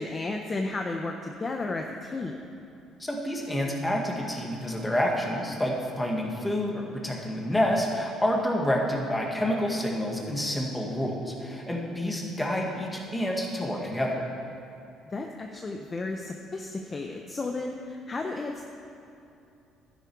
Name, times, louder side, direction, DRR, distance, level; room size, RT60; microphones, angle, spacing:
voice 1, 0.0-2.4 15.1-18.6, left 3 dB, 25° left, 3 dB, 0.7 m, -33 dB
voice 2, 3.0-14.3, equal, 10° left, -1 dB, 1.7 m, -28 dB
12.0 x 10.5 x 4.7 m, 2.7 s
cardioid pair, 120°, 0 cm